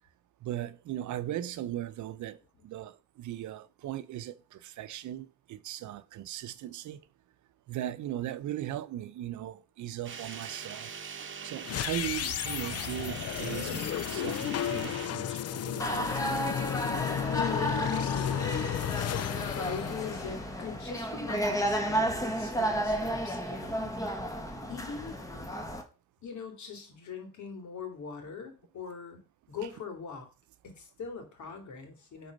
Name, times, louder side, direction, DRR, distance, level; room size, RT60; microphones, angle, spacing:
voice 1, 0.4-7.0 7.7-10.9 11.4-16.1, right 12 dB, 75° right, 0.7 m, -38 dB
sound 1, 10.0-15.1, right 6 dB, 40° right, 1.1 m, -42 dB
sound 2, 11.6-20.9, left 10 dB, 55° left, 0.6 m, -33 dB
sound 3, 15.8-25.8, equal, 10° left, 1.5 m, -32 dB
voice 2, 17.3-18.5 19.5-24.0 24.7-25.2 26.2-29.2 29.5-30.3 30.6-32.3, left 6 dB, 70° left, 2.7 m, -41 dB
9.5 x 4.2 x 5.3 m
cardioid pair, 90°, 30 cm